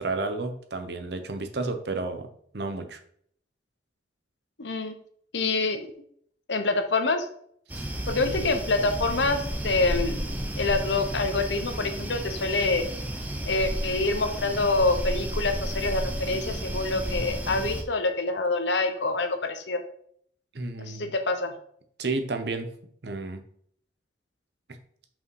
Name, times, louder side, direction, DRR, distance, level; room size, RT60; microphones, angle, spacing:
voice 1, 0.0-2.3 2.5-3.0 7.7-7.9 8.2-8.4 20.5-21.1 22.0-22.7 23.0-23.4, right 3 dB, 65° right, 7 dB, 0.9 m, -31 dB
voice 2, 4.6-4.9 5.3-5.8 6.5-7.3 8.1-10.2 10.6-12.8 13.4-19.8 20.8-21.5, left 3 dB, 80° left, 7 dB, 1.0 m, -26 dB
sound 1, 7.7-17.8, right 1 dB, 10° right, 0.8 m, -32 dB
5.6 x 5.2 x 4.8 m, 0.64 s
head